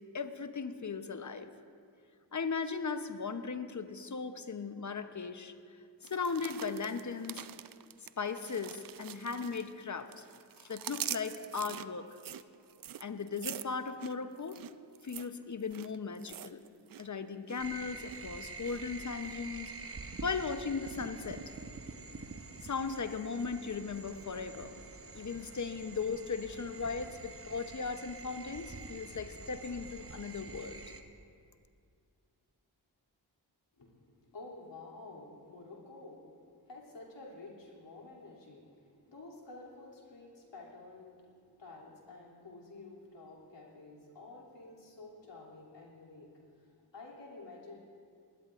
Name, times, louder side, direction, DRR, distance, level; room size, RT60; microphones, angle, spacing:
voice 1, 0.1-1.5 2.3-5.5 6.0-7.4 8.2-10.2 10.6-12.1 13.0-14.6 15.0-16.6 17.0-19.7 20.2-21.4 22.6-24.7 25.1-30.8, left 5 dB, 40° left, 9 dB, 0.9 m, -37 dB
sound 1, 6.0-9.8 10.1-17.1 17.3-17.7 18.1-18.8 19.2-19.3, right 11 dB, 50° right, 0.5 m, -44 dB
sound 2, 17.6-31.0, right 4 dB, 30° right, 1.0 m, -47 dB
voice 2, 33.8-47.8, left 2 dB, 70° left, -4 dB, 3.0 m, -51 dB
19.5 x 13.5 x 2.5 m, 2.2 s
cardioid pair, 45°, 45 cm